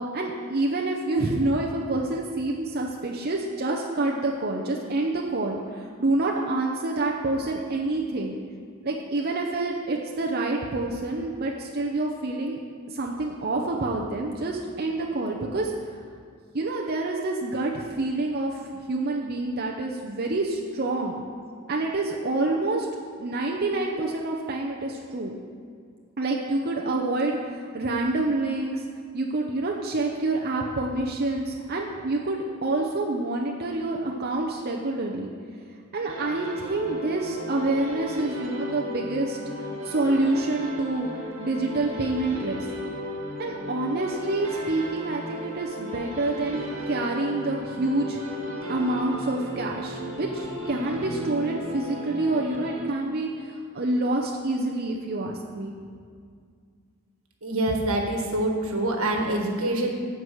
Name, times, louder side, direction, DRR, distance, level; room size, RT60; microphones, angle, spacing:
voice 1, 0.0-8.4 8.8-12.6 12.9-15.7 16.5-18.6 18.9-21.1 21.7-22.9 23.2-25.3 26.2-28.8 29.1-35.3 35.9-39.4 39.8-42.7 43.4-48.2 48.7-55.7, right 2 dB, 45° right, 0 dB, 0.7 m, -27 dB
sound 1, 36.1-53.3, left 1 dB, 60° right, 2.0 m, -35 dB
voice 2, 57.4-59.9, right 1 dB, 80° right, 2 dB, 1.5 m, -25 dB
12.0 x 4.7 x 7.7 m, 2.1 s
head